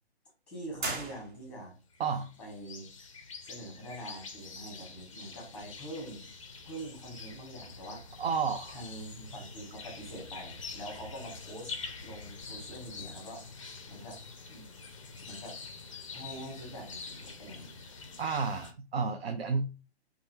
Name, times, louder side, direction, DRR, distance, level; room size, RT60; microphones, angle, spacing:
voice 1, 0.5-1.7 2.4-2.9 3.4-6.3 6.6-8.2 8.7-11.7 12.0-13.5 13.9-14.2 14.5-14.7 15.2-15.6 16.1-17.7, right 1 dB, 5° left, -1 dB, 1.1 m, -44 dB
sound 1, 0.8-1.8, right 2 dB, 45° right, 1.2 m, -37 dB
sound 2, 1.9-18.7, left 4 dB, 30° left, 0.4 m, -46 dB
voice 2, 2.0-2.3 8.2-8.8 18.2-19.8, right 5 dB, 65° right, 6 dB, 0.5 m, -31 dB
2.9 x 2.4 x 2.9 m, 0.33 s
figure-of-eight pair, 130°, 33 cm